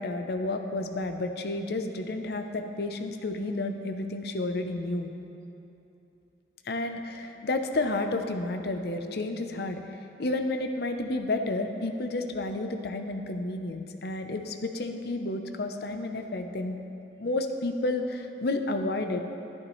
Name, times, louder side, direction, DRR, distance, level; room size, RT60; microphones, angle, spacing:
voice 1, 0.0-5.1 6.6-16.8 17.2-19.2, left 2 dB, 60° left, 6 dB, 0.6 m, -31 dB
11.5 x 10.5 x 3.1 m, 2.9 s
head